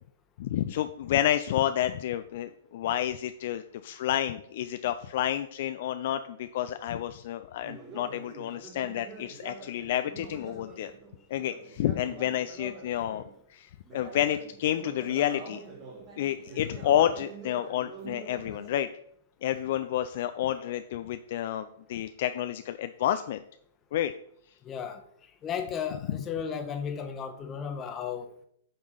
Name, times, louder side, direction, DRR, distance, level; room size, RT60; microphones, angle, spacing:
voice 1, 0.4-10.9 11.3-15.6 16.2-18.9 19.4-23.4 23.9-24.1 26.1-26.2, left 11 dB, 50° left, 0.3 m, -30 dB
Conversation, 7.6-13.4 13.8-18.7, right 3 dB, 30° right, 1.6 m, -46 dB
voice 2, 24.6-25.0 25.4-28.4, left 7 dB, 25° left, 1.0 m, -34 dB
7.7 x 3.6 x 5.5 m
figure-of-eight pair, 110°, 0 cm